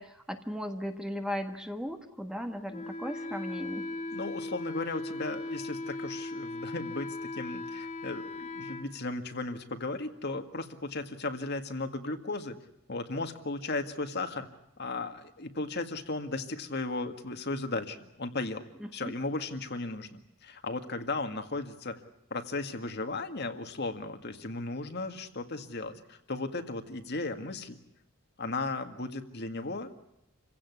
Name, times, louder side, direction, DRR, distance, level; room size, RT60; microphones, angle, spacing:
voice 1, 0.0-3.9 18.8-19.1, equal, 5° right, 6 dB, 1.5 m, -37 dB
Wind instrument woodwind instrument, 2.7-8.9, left 2 dB, 35° left, 1.9 m, -38 dB
voice 2, 4.1-12.5 12.9-14.5 14.8-18.7 18.9-22.0 22.3-27.8 28.4-29.9, left 2 dB, 50° left, 7 dB, 2.0 m, -36 dB
28.0 x 16.5 x 9.7 m, 0.84 s
head